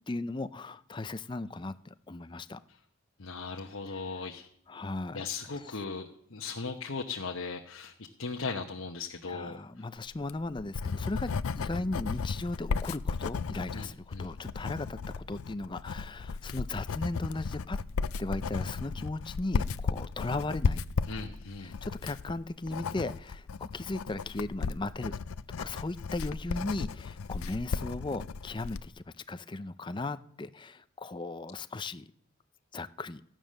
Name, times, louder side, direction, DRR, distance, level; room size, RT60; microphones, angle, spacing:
voice 1, 0.1-2.6 3.9-4.3 4.7-5.3 5.6-5.7 9.3-11.3 11.6-17.8 18.2-20.8 21.6-25.1 25.6-32.1 32.7-33.2, left 2 dB, 20° left, 0.4 m, -37 dB
voice 2, 3.2-4.5 5.1-7.9 8.2-9.6 13.7-14.3 21.1-21.7, left 4 dB, 75° left, 1.0 m, -38 dB
Writing, 10.1-28.9, left 5 dB, 90° left, 0.5 m, -35 dB
15.0 x 9.0 x 6.4 m
head